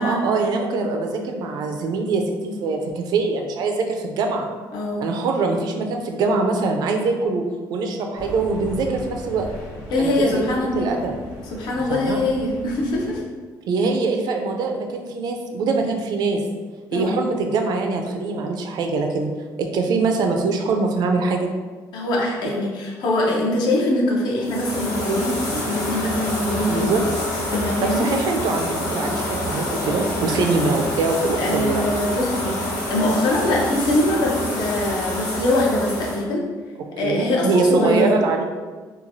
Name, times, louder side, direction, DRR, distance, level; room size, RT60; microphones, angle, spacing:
voice 1, 0.0-4.5 5.0-9.5 10.0-10.4 10.7-11.1 11.9-12.2 13.7-16.4 16.9-19.3 19.6-21.5 26.7-27.0 27.8-31.8 37.0-38.4, right 4 dB, 60° right, 3 dB, 0.4 m, -23 dB
voice 2, 4.7-5.0 9.9-10.9 11.5-13.2 16.9-17.2 21.9-27.0 27.5-28.1 31.4-32.6 32.9-36.4 37.0-38.2, left 1 dB, 65° left, -2 dB, 0.6 m, -23 dB
sound 1, 8.1-13.2, equal, 80° left, 1.3 m, -38 dB
sound 2, 24.4-36.2, left 1 dB, 50° left, 1.2 m, -27 dB
3.0 x 2.3 x 2.6 m, 1.4 s
cardioid pair, 150°, 8 cm